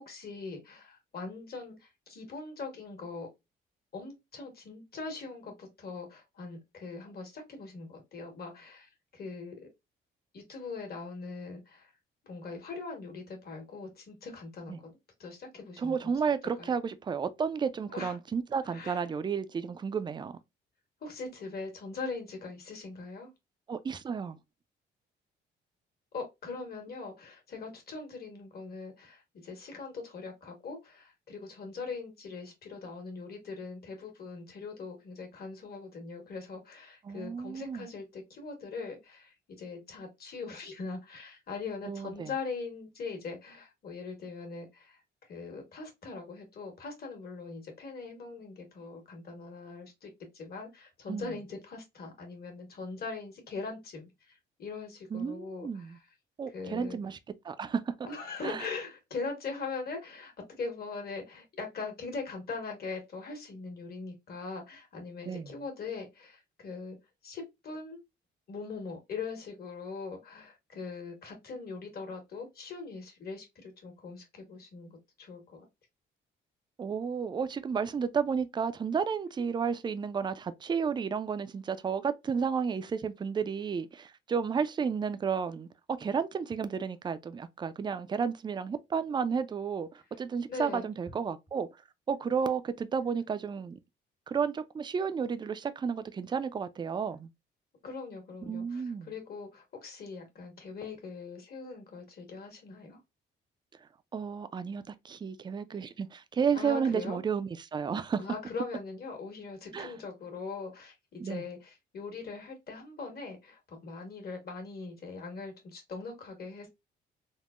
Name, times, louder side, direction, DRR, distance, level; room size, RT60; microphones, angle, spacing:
voice 1, 0.1-3.3 3.9-9.7 10.3-11.9 12.2-16.1 16.6-16.8 17.9-18.2 18.7-19.0 21.0-23.3 26.1-45.0 45.3-56.0 56.5-57.0 58.0-67.0 67.2-68.0 68.5-75.6 90.5-90.9 97.8-103.0 106.5-107.2 108.2-116.7, left 4 dB, 50° left, 1.3 m, -41 dB
voice 2, 15.8-20.3 23.7-24.4 37.0-37.9 41.8-42.3 51.1-51.3 55.1-56.0 56.4-57.2 57.4-58.0 58.4-58.7 65.2-65.5 76.8-89.9 90.2-91.7 92.1-93.8 94.3-97.3 98.5-99.1 104.1-108.2 109.7-109.9 111.2-111.4, right 6 dB, 25° right, 0.3 m, -32 dB
3.5 x 2.1 x 2.3 m
cardioid pair, 90°, 20 cm